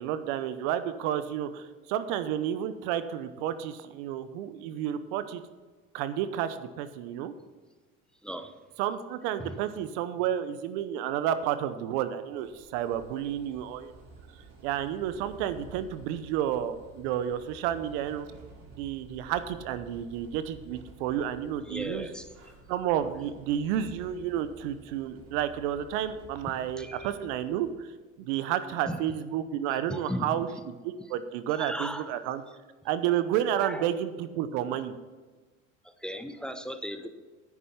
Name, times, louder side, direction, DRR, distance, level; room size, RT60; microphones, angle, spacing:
voice 1, 0.0-5.4 5.9-7.3 8.8-13.9 14.3-18.3 18.8-22.1 22.7-27.9 28.2-32.4 32.8-34.9, right 10 dB, 70° right, 12 dB, 0.9 m, -31 dB
sound 1, 12.4-27.7, right 3 dB, 45° right, 3.3 m, -52 dB
voice 2, 21.6-22.3 26.8-27.1 28.9-29.0 29.9-30.4 31.6-32.1 33.6-33.9 35.8-37.1, equal, ahead, 9 dB, 0.9 m, -36 dB
9.9 x 9.6 x 5.8 m, 1.3 s
hypercardioid pair, 75°, 37 cm